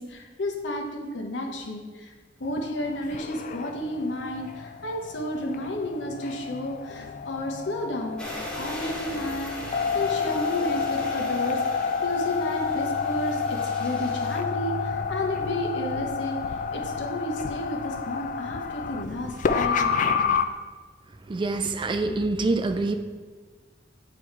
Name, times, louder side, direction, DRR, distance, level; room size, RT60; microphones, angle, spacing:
voice 1, 0.0-2.1 2.4-8.2 8.6-16.4 16.7-20.4 22.0-22.2, left 1 dB, 85° left, 2 dB, 0.9 m, -32 dB
sound 1, 2.4-20.4, left 6 dB, 45° left, 0.3 m, -29 dB
sound 2, 8.2-14.4, equal, 5° left, 1.0 m, -39 dB
voice 2, 21.3-23.0, right 3 dB, 25° right, 7 dB, 0.4 m, -26 dB
8.4 x 3.1 x 4.5 m, 1.4 s
head